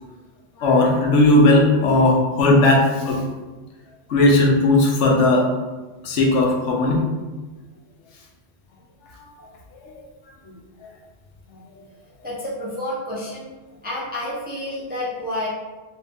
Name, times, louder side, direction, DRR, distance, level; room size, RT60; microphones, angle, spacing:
voice 1, 0.6-3.2 4.1-5.5 6.0-7.0, left 2 dB, 80° left, -1 dB, 1.0 m, -16 dB
voice 2, 12.2-13.5 13.8-15.5, left 1 dB, 15° right, -6 dB, 0.4 m, -29 dB
2.9 x 2.6 x 3.4 m, 1.2 s
omnidirectional pair, 1.2 m